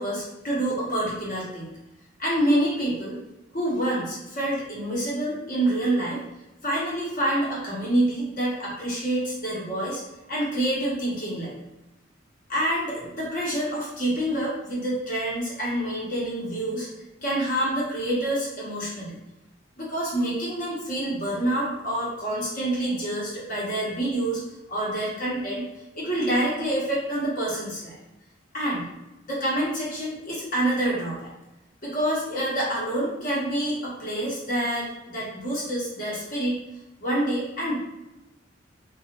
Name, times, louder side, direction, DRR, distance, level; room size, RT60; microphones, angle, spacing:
voice 1, 0.0-1.7 2.2-3.2 3.5-6.2 6.6-10.0 10.3-11.7 12.5-16.9 17.2-19.2 19.8-24.4 24.7-25.6 25.9-28.0 28.5-28.9 29.3-31.3 31.8-36.5 37.0-37.8, right 1 dB, 45° left, -5 dB, 0.9 m, -27 dB
2.4 x 2.3 x 2.9 m, 0.95 s
head